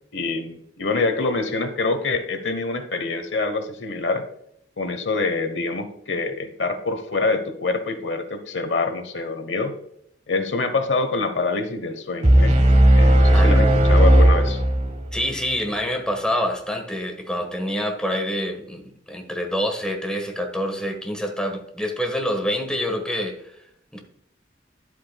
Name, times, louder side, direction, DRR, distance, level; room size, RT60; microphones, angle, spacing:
voice 1, 0.1-4.2 4.8-9.7 10.3-12.6 12.9-14.6, left 3 dB, 75° left, 9 dB, 1.0 m, -25 dB
sound 1, 12.2-15.2, right 1 dB, 40° right, 1.1 m, -15 dB
voice 2, 15.1-23.4 23.9-24.0, equal, 5° left, 3 dB, 1.3 m, -26 dB
11.0 x 8.4 x 2.3 m, 0.73 s
head